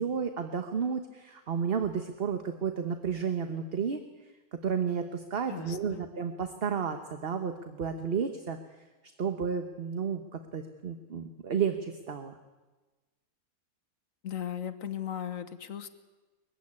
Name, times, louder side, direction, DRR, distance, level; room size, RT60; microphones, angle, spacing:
voice 1, 0.0-4.0 4.6-8.6 9.2-12.4, right 6 dB, 45° right, 7 dB, 1.2 m, -32 dB
voice 2, 5.5-6.0 14.2-15.9, left 9 dB, 65° left, 11 dB, 1.5 m, -37 dB
22.0 x 15.0 x 9.7 m, 1.2 s
omnidirectional pair, 1.6 m